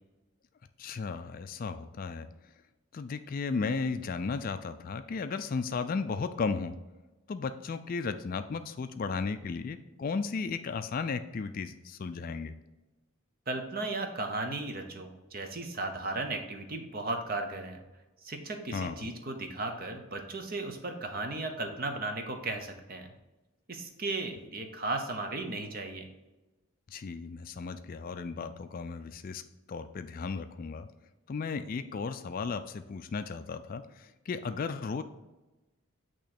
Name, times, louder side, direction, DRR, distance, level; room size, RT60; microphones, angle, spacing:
voice 1, 0.8-2.3 2.9-6.8 7.3-12.5 18.7-19.1 26.9-29.4 29.7-30.9 31.3-35.0, left 4 dB, 40° left, 10 dB, 0.3 m, -35 dB
voice 2, 13.5-17.8 18.2-23.1 23.7-26.1, right 2 dB, 40° right, 5 dB, 0.8 m, -35 dB
8.7 x 3.0 x 4.3 m, 1.1 s
head